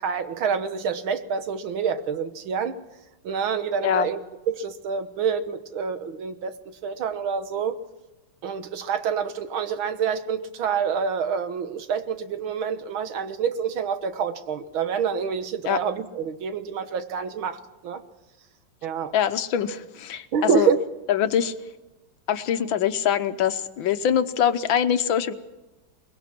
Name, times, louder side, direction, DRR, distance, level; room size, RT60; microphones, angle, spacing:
voice 1, 0.0-2.8 3.2-7.8 8.4-18.0 18.8-19.2 20.3-20.8, right 6 dB, 80° right, 10 dB, 2.0 m, -27 dB
voice 2, 19.1-20.7 21.1-21.5 22.3-25.3, left 9 dB, 75° left, 10 dB, 1.7 m, -23 dB
23.0 x 20.5 x 6.0 m, 1.1 s
omnidirectional pair, 2.2 m